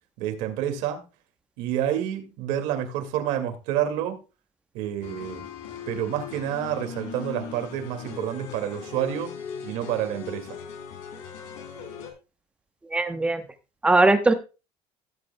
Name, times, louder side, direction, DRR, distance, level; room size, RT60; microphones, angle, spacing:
voice 1, 0.2-1.0 1.6-4.2 4.7-5.4 5.9-9.3 9.6-10.6, right 10 dB, 80° right, 2.1 m, -28 dB
sound 1, 5.0-12.1, left 6 dB, 80° left, 3.2 m, -39 dB
voice 2, 12.9-13.4 13.8-14.3, right 2 dB, 10° right, 0.8 m, -19 dB
16.0 x 8.4 x 2.2 m
cardioid pair, 175°, 13 cm